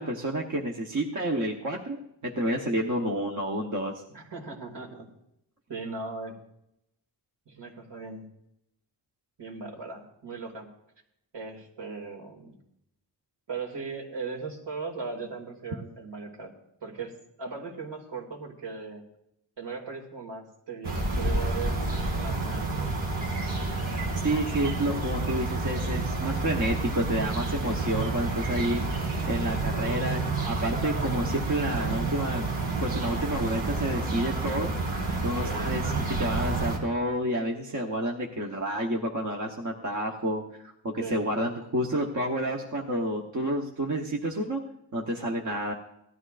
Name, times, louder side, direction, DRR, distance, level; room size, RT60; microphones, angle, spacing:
voice 1, 0.0-3.9 24.2-28.8 29.3-30.2 30.5-32.4 32.8-34.7 35.2-44.6 44.9-45.7, right 1 dB, 40° right, 0 dB, 1.0 m, -29 dB
voice 2, 4.1-5.1 5.7-6.4 7.5-8.2 9.4-10.7 11.3-12.5 13.5-16.5 16.8-19.0 19.6-21.8 22.2-22.9 28.4-28.9 35.4-36.0 41.0-41.2, right 4 dB, 65° right, 0 dB, 2.4 m, -38 dB
sound 1, 20.8-36.8, right 2 dB, 90° right, 2.8 m, -29 dB
17.5 x 12.5 x 2.5 m, 0.79 s
wide cardioid pair, 170°, 46 cm